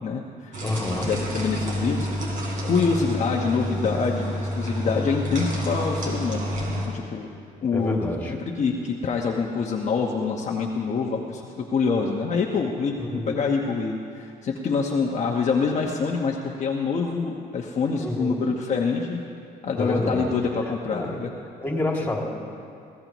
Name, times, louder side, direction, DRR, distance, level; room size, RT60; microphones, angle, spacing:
voice 1, 0.0-0.6 1.0-2.1 2.6-7.3 7.6-8.0 8.3-11.4 11.7-19.2 19.6-21.3, left 5 dB, 45° left, -1 dB, 1.1 m, -26 dB
sound 1, 0.5-6.9, equal, 50° right, 3.8 m, -29 dB
voice 2, 0.6-1.1 7.7-8.3 13.0-13.4 18.0-18.5 19.8-20.3 20.9-21.2 21.6-22.2, left 1 dB, 10° left, -1 dB, 2.7 m, -28 dB
22.0 x 16.0 x 3.1 m, 2.5 s
cardioid pair, 110°, 17 cm